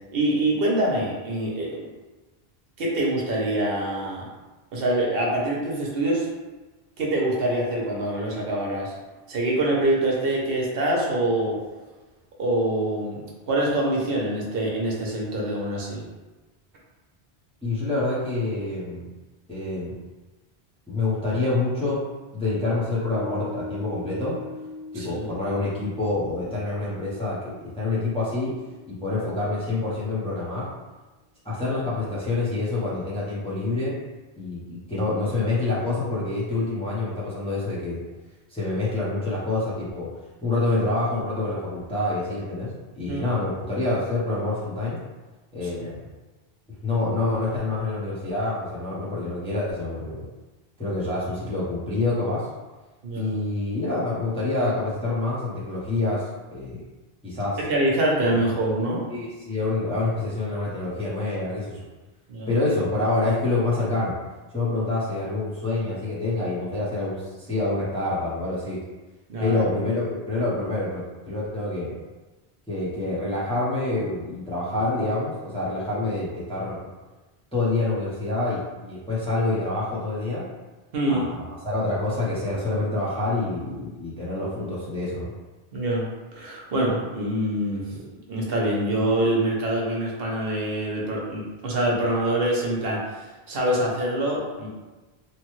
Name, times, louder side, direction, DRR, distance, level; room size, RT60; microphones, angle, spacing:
voice 1, 0.1-1.9 2.8-4.3 4.7-6.3 7.0-8.9 9.3-11.6 12.4-13.2 13.5-16.0 24.9-25.3 43.1-43.4 45.6-45.7 53.0-53.3 57.6-59.0 62.3-62.5 69.3-69.6 80.9-81.3 85.7-86.1 86.3-87.8 88.3-94.7, right 1 dB, 70° right, -3 dB, 0.9 m, -25 dB
voice 2, 17.6-19.1 19.5-19.9 20.9-22.0 22.3-24.4 24.9-28.5 28.9-30.6 31.4-33.9 34.3-38.0 38.5-40.1 40.4-42.7 43.0-45.0 45.5-46.0 46.8-50.2 50.8-52.4 53.2-56.2 56.5-56.8 57.2-57.6 58.3-58.4 59.1-61.8 62.5-64.1 64.5-68.8 69.4-71.9 72.7-76.8 77.5-80.4 81.1-85.3, left 2 dB, 5° left, -8 dB, 0.6 m, -27 dB
Piano, 23.1-29.9, left 3 dB, 55° left, 0.7 m, -41 dB
3.1 x 2.2 x 3.0 m, 1.2 s
omnidirectional pair, 1.0 m